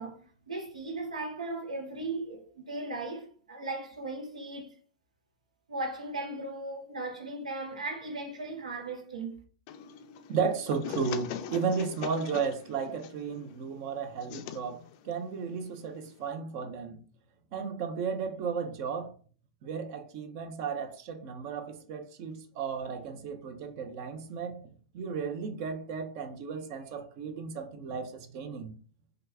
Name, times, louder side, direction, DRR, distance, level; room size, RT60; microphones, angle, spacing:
voice 1, 0.0-4.8 5.7-9.4, right 2 dB, 90° right, 0.8 m, -37 dB
sound 1, 9.7-16.3, left 9 dB, 50° left, 0.4 m, -43 dB
voice 2, 10.3-17.0 17.5-19.1 19.6-28.8, right 6 dB, 50° right, 0.7 m, -34 dB
2.9 x 2.4 x 3.4 m
hypercardioid pair, 110°, 4 cm